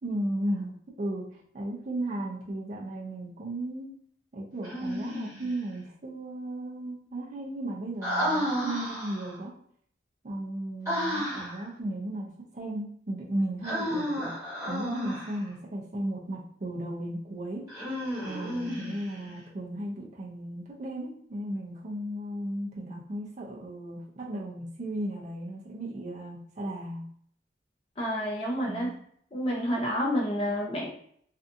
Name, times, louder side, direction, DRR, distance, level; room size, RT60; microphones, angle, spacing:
voice 1, 0.0-3.9 4.3-9.5 10.2-17.7 18.2-27.1 28.7-29.0, right 1 dB, 40° right, -4 dB, 0.5 m, -35 dB
Human voice, 4.6-5.5 8.0-9.4 10.8-11.6 13.6-15.4 17.7-19.3, equal, 20° right, 1.4 m, -32 dB
voice 2, 28.0-28.9 29.3-30.9, equal, 30° left, -4 dB, 0.5 m, -29 dB
2.6 x 2.3 x 2.5 m, 0.63 s
head